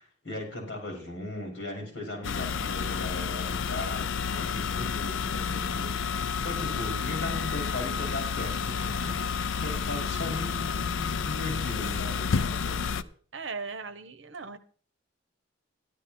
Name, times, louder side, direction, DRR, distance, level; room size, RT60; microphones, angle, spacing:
voice 1, 0.0-13.1, left 2 dB, 60° left, 1 dB, 5.3 m, -38 dB
sound 1, 2.2-13.0, left 6 dB, 80° left, 0.5 m, -30 dB
voice 2, 13.3-14.6, right 4 dB, 75° right, 11 dB, 1.0 m, -38 dB
13.0 x 11.5 x 4.3 m, 0.44 s
head